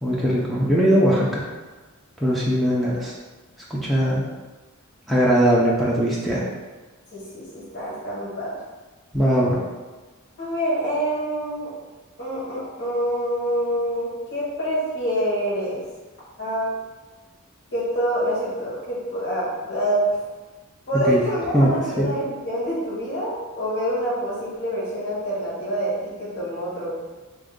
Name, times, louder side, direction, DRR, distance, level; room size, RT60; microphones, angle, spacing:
voice 1, 0.0-1.4 2.2-3.1 3.7-4.2 5.1-6.4 9.1-9.6 21.1-21.2 21.5-21.7 22.0-22.1, equal, ahead, -7 dB, 0.5 m, -20 dB
voice 2, 7.1-8.5 10.4-11.7 12.2-15.8 16.4-16.7 17.7-20.2 20.9-26.9, equal, 55° left, -9 dB, 1.5 m, -26 dB
3.4 x 2.6 x 3.7 m, 1.2 s
head